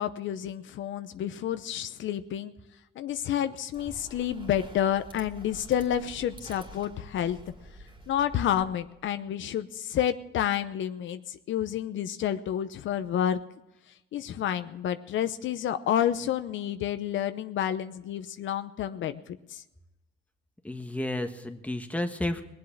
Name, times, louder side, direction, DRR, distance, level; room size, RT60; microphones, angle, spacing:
voice 1, 0.0-2.5 3.0-7.4 8.1-13.4 14.1-19.6, left 10 dB, 75° left, 10 dB, 0.8 m, -29 dB
sound 1, 3.7-9.1, right 1 dB, 25° right, 2.8 m, -48 dB
voice 2, 20.6-22.4, left 1 dB, 5° left, 5 dB, 1.5 m, -31 dB
20.5 x 7.8 x 7.2 m, 0.96 s
cardioid pair, 90°, 20 cm